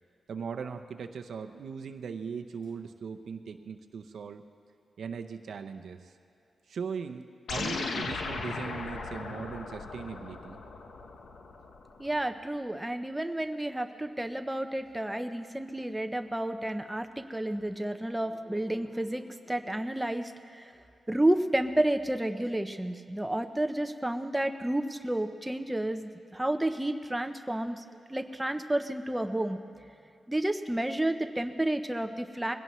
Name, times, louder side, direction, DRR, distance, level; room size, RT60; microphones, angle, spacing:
voice 1, 0.3-4.4 5.0-6.2 6.7-10.6, right 6 dB, 70° right, 7 dB, 0.6 m, -39 dB
sound 1, 7.5-12.1, left 4 dB, 75° left, 1.0 m, -37 dB
voice 2, 12.0-20.7 21.1-27.8 28.1-29.6 30.3-32.5, right 1 dB, 5° right, 7 dB, 0.6 m, -31 dB
21.0 x 16.5 x 3.1 m, 2.5 s
wide cardioid pair, 150°, 0 cm